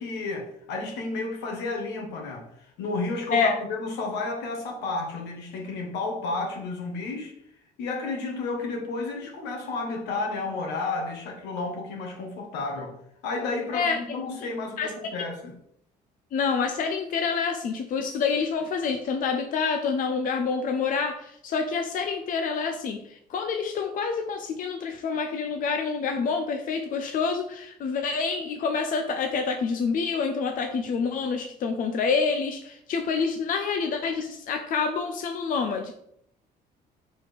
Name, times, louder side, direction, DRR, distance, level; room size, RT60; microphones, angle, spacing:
voice 1, 0.0-7.3 7.8-12.9 13.2-15.5, left 3 dB, 90° left, 1 dB, 1.6 m, -32 dB
voice 2, 16.3-35.9, left 5 dB, 55° left, 5 dB, 0.7 m, -27 dB
5.0 x 4.4 x 4.5 m, 0.71 s
cardioid pair, 110°, 17 cm